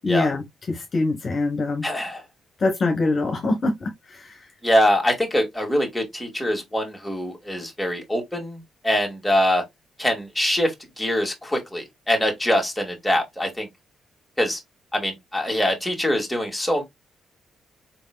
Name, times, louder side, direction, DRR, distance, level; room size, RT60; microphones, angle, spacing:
voice 1, 0.0-1.9 2.6-3.9 4.2-4.3, left 3 dB, 45° left, 1.2 m, -24 dB
voice 2, 1.8-2.2 4.6-9.6 10.0-13.7 14.4-14.6 14.9-16.8, equal, 5° left, 2.1 m, -23 dB
4.5 x 3.5 x 2.3 m
cardioid pair, 80°, 0 cm